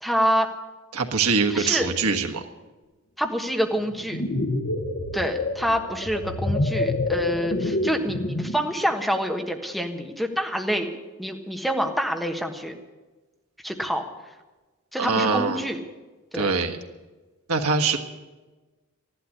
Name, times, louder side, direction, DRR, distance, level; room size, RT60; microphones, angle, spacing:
voice 1, 0.0-0.5 1.5-1.9 3.2-4.2 5.1-10.9 11.2-12.8 13.6-14.0 14.9-15.8 16.3-16.5, equal, ahead, 4 dB, 1.4 m, -26 dB
voice 2, 0.9-2.4 15.0-15.7 16.3-16.8 17.5-18.0, right 4 dB, 80° right, 4 dB, 1.5 m, -23 dB
sound 1, 3.9-8.7, left 2 dB, 50° left, 1.3 m, -27 dB
14.0 x 11.5 x 8.5 m, 1.2 s
head